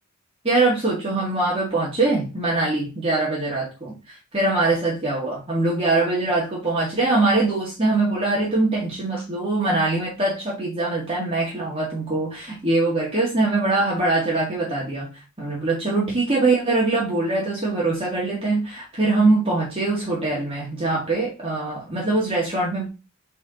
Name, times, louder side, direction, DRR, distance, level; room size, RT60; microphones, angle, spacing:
voice 1, 0.4-15.1 15.4-22.9, right 2 dB, 25° right, -5 dB, 2.1 m, -23 dB
5.0 x 4.5 x 5.2 m, 0.30 s
head